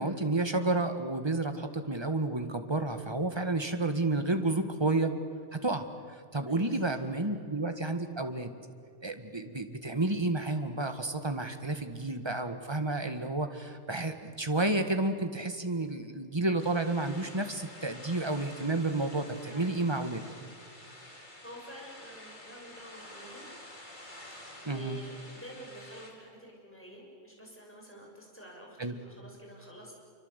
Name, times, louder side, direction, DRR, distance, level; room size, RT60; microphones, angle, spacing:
voice 1, 0.0-5.1 5.6-8.5 9.0-20.2 24.6-25.0 28.8-29.0, right 2 dB, 20° right, 7 dB, 1.7 m, -31 dB
voice 2, 6.5-6.9 7.2-7.4 19.4-20.5 21.2-23.4 24.6-30.0, equal, 10° left, -2 dB, 6.5 m, -49 dB
sound 1, 16.6-26.1, left 1 dB, 40° left, 4.1 m, -49 dB
26.5 x 24.5 x 8.2 m, 2.3 s
omnidirectional pair, 1.3 m